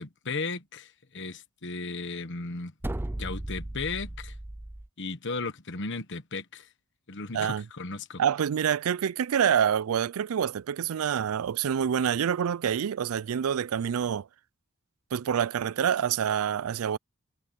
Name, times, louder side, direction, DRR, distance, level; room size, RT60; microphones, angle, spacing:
voice 1, 0.0-2.7 3.1-4.3 5.0-6.7 7.1-8.2, left 3 dB, 60° left, 1.3 m, -35 dB
sound 1, 2.8-4.9, right 1 dB, 10° right, 0.4 m, -36 dB
voice 2, 7.3-7.7 8.2-14.3 15.1-17.0, right 8 dB, 80° right, 0.4 m, -27 dB
head